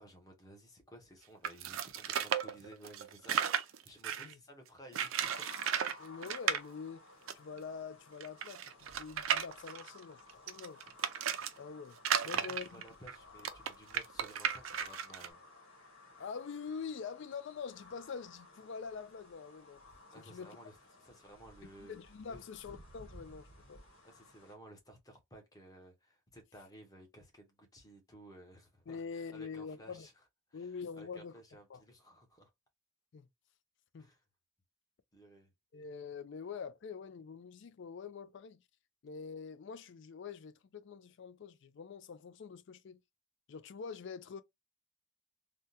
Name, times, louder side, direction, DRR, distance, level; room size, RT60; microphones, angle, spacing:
voice 1, 0.0-5.5 12.2-15.4 20.1-21.9 22.3-22.4 24.0-30.2 30.5-32.5 34.0-34.2 35.1-35.5, right 1 dB, 15° left, 0.8 m, -56 dB
sound 1, 1.4-4.3 4.9-6.0 6.2-6.6 7.3-7.4 7.6-7.7 8.2-11.5 12.0-15.3, right 8 dB, 70° right, 0.4 m, -34 dB
sound 2, 5.2-24.6, left 2 dB, 75° left, 1.4 m, -57 dB
voice 2, 6.0-7.1 7.3-10.8 11.6-12.0 12.2-12.8 16.2-19.8 20.2-20.6 21.8-23.8 28.9-30.1 30.5-31.3 31.7-31.8 33.1-33.3 33.9-34.1 35.7-38.6 39.0-43.0 43.5-44.4, left 5 dB, 60° left, 0.4 m, -45 dB
3.5 x 2.2 x 2.7 m
head